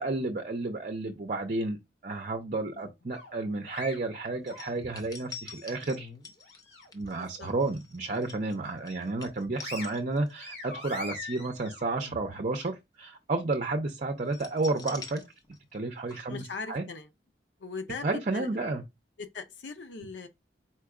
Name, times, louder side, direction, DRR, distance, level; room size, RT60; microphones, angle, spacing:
voice 1, 0.0-1.8 2.0-6.1 6.9-15.2 15.7-16.4 16.7-16.8 18.0-18.8, right 2 dB, 45° right, 0.6 m, -31 dB
sound 1, 3.1-5.2 5.6-7.1 7.4-7.6 8.0-8.8 9.2-12.7, left 3 dB, 70° left, 2.0 m, -44 dB
sound 2, 4.5-10.5 10.9-11.1 14.3-15.8 16.1-16.2, left 4 dB, 20° left, 0.6 m, -46 dB
voice 2, 7.2-7.5 8.9-9.1 16.3-17.1 17.6-18.5 19.2-20.3, left 4 dB, 85° left, 0.6 m, -40 dB
4.5 x 2.3 x 4.7 m
head